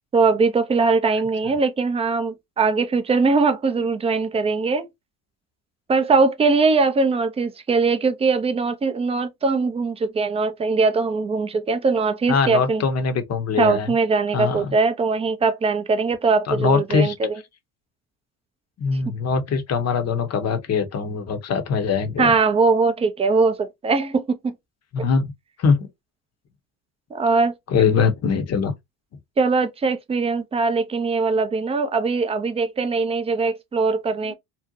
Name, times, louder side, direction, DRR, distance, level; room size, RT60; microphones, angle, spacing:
voice 1, 0.0-4.9 5.9-12.8 13.6-17.3 22.2-24.5 27.1-27.5 29.4-34.3, right 4 dB, 15° right, 0.3 m, -21 dB
voice 2, 12.3-13.9 14.3-14.7 16.5-17.1 18.8-22.3 24.9-25.3 25.6-25.8 27.7-28.7 34.2-34.3, left 5 dB, 35° left, 0.7 m, -22 dB
2.7 x 2.1 x 2.6 m
hypercardioid pair, 65°, 46 cm